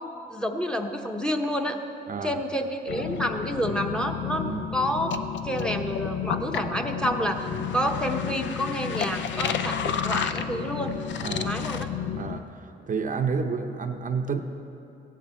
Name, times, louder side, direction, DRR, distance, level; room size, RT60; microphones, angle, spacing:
voice 1, 0.0-1.8 2.2-5.1 5.4-7.5 7.7-10.9 11.4-11.9, equal, 5° left, 3 dB, 0.9 m, -29 dB
sound 1, 2.9-12.4, left 8 dB, 65° left, 0.6 m, -31 dB
voice 2, 11.2-11.6 12.1-14.4, right 5 dB, 40° right, 4 dB, 0.7 m, -30 dB
16.0 x 10.5 x 4.3 m, 2.7 s
cardioid pair, 90°, 20 cm